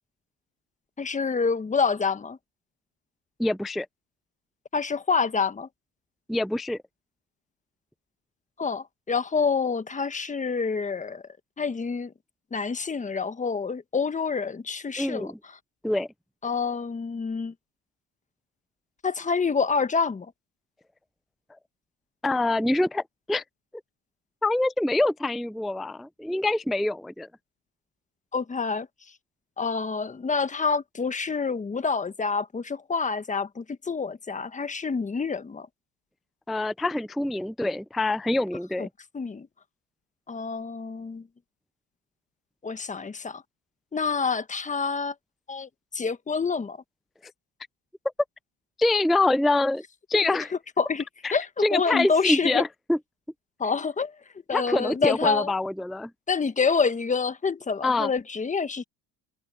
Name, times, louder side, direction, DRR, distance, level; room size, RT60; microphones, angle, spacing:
voice 1, 1.0-2.4 4.7-5.7 8.6-11.2 11.6-12.1 12.5-15.3 16.4-17.5 19.0-20.3 28.3-28.9 29.6-35.7 38.8-38.9 39.1-39.5 40.3-41.2 42.6-43.4 43.9-45.1 45.5-46.8 50.8-51.0 51.3-52.6 53.6-54.1 54.5-55.5 56.3-58.8, left 5 dB, 20° left, 1.4 m, -27 dB
voice 2, 3.4-3.9 6.3-6.8 15.0-15.4 15.8-16.1 22.2-23.4 24.4-27.3 36.5-38.9 48.8-49.8 50.1-50.5 51.2-53.0 54.5-56.1 57.8-58.1, left 2 dB, ahead, 0.4 m, -25 dB
supercardioid pair, 100°, 37 cm